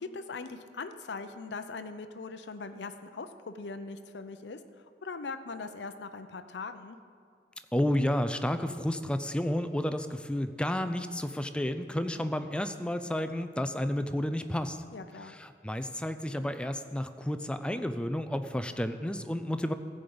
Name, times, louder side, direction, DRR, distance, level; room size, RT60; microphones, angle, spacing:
voice 1, 0.0-4.6 5.0-7.0 14.9-15.3, left 4 dB, 80° left, 9 dB, 0.6 m, -40 dB
voice 2, 7.7-14.8 15.2-19.7, left 1 dB, 5° left, 9 dB, 0.4 m, -31 dB
14.5 x 5.2 x 7.8 m, 2.2 s
head